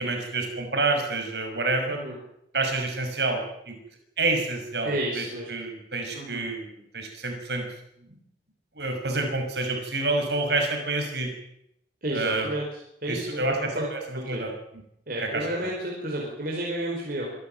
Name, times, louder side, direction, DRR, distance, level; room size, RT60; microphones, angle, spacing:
voice 1, 0.0-2.0 2.5-3.8 4.2-6.7 6.9-7.7 8.0-8.2 8.8-11.3 12.1-12.5 13.1-14.5 15.2-15.5, right 2 dB, 70° right, 4 dB, 5.7 m, -28 dB
voice 2, 4.8-5.5 6.1-6.4 12.0-12.6 13.0-13.9 14.1-14.4 15.1-17.3, right 1 dB, 50° right, -2 dB, 5.1 m, -31 dB
26.5 x 12.0 x 9.3 m, 0.77 s
head